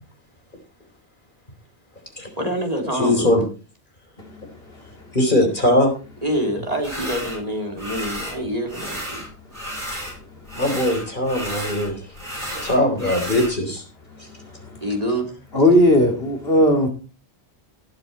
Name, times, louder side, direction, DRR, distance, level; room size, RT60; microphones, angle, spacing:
voice 1, 2.4-3.4 6.2-9.2 14.8-15.3, equal, 35° right, 3.6 m, -26 dB
voice 2, 2.9-3.4 5.1-5.9 10.5-12.0 12.4-13.8, left 1 dB, 50° left, 4.1 m, -20 dB
sound 1, 6.8-7.4 7.8-8.4 8.7-10.2 10.4-13.5, equal, 55° right, 7.9 m, -32 dB
voice 3, 15.5-16.9, left 1 dB, 65° left, 3.0 m, -16 dB
19.0 x 7.6 x 4.3 m
omnidirectional pair, 1.1 m